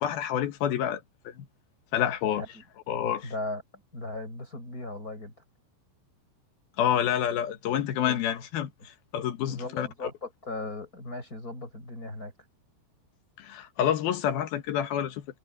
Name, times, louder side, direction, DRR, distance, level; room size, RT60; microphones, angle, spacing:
voice 1, 0.0-1.5 1.9-2.4 2.9-3.3 6.8-9.9 13.4-15.3, left 10 dB, 70° left, 3.0 m, -28 dB
voice 2, 3.2-3.6 3.9-5.3 8.0-8.3 9.5-12.3, left 2 dB, 20° left, 6.2 m, -37 dB
omnidirectional pair, 5.0 m